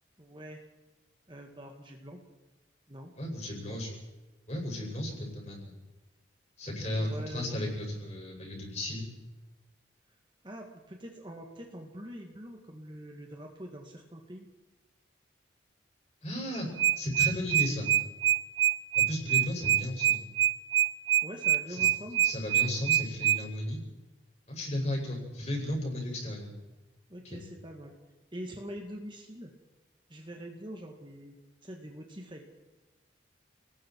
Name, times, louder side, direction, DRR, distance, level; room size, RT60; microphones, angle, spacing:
voice 1, 0.2-0.6 1.3-2.2 2.9-3.1 3.4-3.8 7.0-7.5 10.4-14.5 21.2-22.2 27.1-28.0 28.3-29.5 30.1-31.3 31.6-32.5, equal, 25° right, 2 dB, 2.0 m, -44 dB
voice 2, 3.2-3.9 4.5-5.7 6.6-9.1 16.2-16.7 16.9-17.9 18.9-20.2 21.7-21.9 22.2-23.8 24.5-26.5 27.2-27.4, left 1 dB, 35° left, -1 dB, 6.8 m, -34 dB
sound 1, 16.6-23.4, right 12 dB, 70° right, 0.7 m, -24 dB
29.5 x 19.5 x 4.7 m, 1.1 s
head